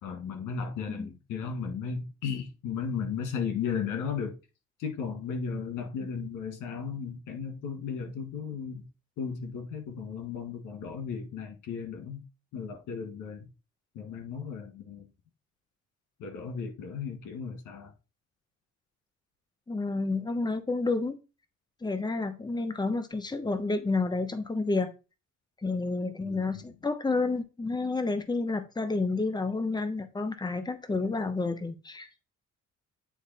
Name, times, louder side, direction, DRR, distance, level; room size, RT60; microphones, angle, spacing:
voice 1, 0.0-4.4 4.8-8.9 9.2-12.2 12.5-13.5 13.9-15.1 16.2-17.9 26.2-26.7, left 6 dB, 85° left, 2.0 m, -35 dB
voice 2, 19.7-21.2 21.8-24.9 25.6-32.1, left 3 dB, 15° left, 1.0 m, -30 dB
9.4 x 3.3 x 4.2 m
cardioid pair, 90°, 30 cm